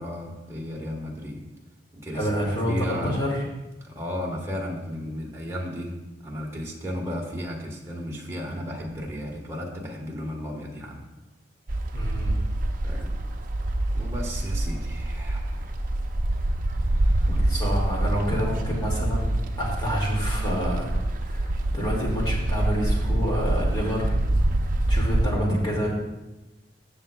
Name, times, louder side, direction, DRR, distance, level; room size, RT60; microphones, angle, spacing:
voice 1, 0.0-1.4 1.9-3.1 3.8-11.1 12.8-13.2 13.9-15.7 16.8-17.4, equal, 15° right, -2 dB, 1.4 m, -34 dB
voice 2, 2.1-3.4 11.9-12.4 17.3-21.0 21.2-24.2 24.9-25.9, equal, 25° left, -3 dB, 2.3 m, -28 dB
sound 1, 11.7-25.3, right 1 dB, 45° right, 0.6 m, -26 dB
15.5 x 6.7 x 2.4 m, 1.0 s
head